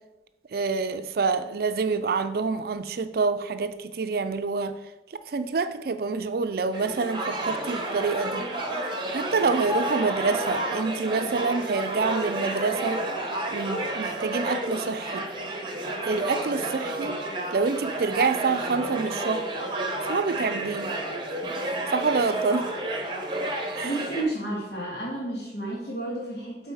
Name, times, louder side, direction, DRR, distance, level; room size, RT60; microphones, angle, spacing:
voice 1, 0.5-4.8 5.3-8.5 9.1-13.0 13.5-15.3 16.0-17.2 17.5-19.5 20.1-20.9 21.9-22.7 23.7-23.9, right 4 dB, 55° right, 10 dB, 0.4 m, -27 dB
sound 1, 6.7-24.2, right 1 dB, 25° right, 0.9 m, -31 dB
voice 2, 23.8-26.7, right 1 dB, 70° left, -4 dB, 2.6 m, -31 dB
7.9 x 4.1 x 4.7 m, 1.0 s
head